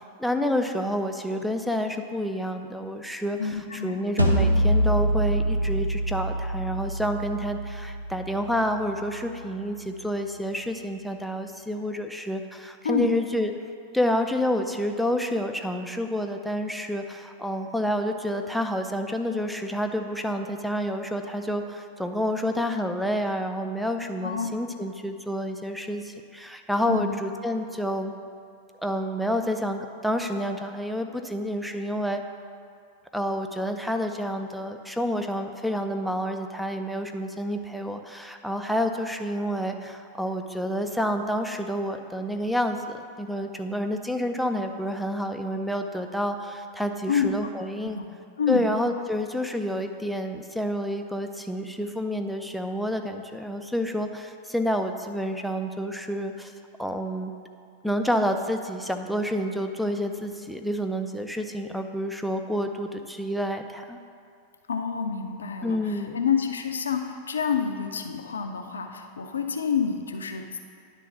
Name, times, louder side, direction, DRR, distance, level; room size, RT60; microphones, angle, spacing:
voice 1, 0.2-13.5 13.9-28.1 28.8-32.2 33.1-48.0 48.5-56.5 56.8-57.3 57.8-64.0 65.6-66.2, equal, ahead, 5 dB, 0.5 m, -29 dB
voice 2, 3.4-4.0 12.8-13.1 24.2-24.5 26.9-27.1 47.1-47.3 47.9-48.0 48.4-48.7 64.7-70.6, left 7 dB, 70° left, 4 dB, 0.5 m, -28 dB
sound 1, 4.2-9.3, equal, 85° right, 0.6 m, -25 dB
10.0 x 3.8 x 5.7 m, 2.3 s
figure-of-eight pair, 90°, 0 cm